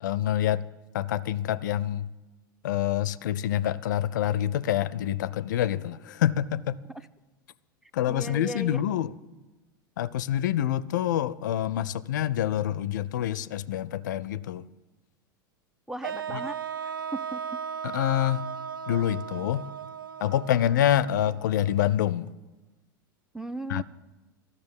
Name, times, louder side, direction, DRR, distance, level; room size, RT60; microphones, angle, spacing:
voice 1, 0.0-0.6 0.9-2.1 2.6-6.8 7.9-9.1 10.0-14.6 16.3-16.4 17.8-18.4 18.9-19.7 20.2-22.3 23.7-23.8, left 11 dB, 60° left, 20 dB, 0.4 m, -26 dB
voice 2, 8.1-8.8 15.9-16.6 17.1-17.4 23.3-23.8, right 1 dB, 5° right, 15 dB, 0.3 m, -36 dB
sound 1, 16.0-22.1, right 7 dB, 75° right, 0.4 m, -37 dB
12.0 x 6.6 x 9.8 m, 1.1 s
figure-of-eight pair, 85°, 11 cm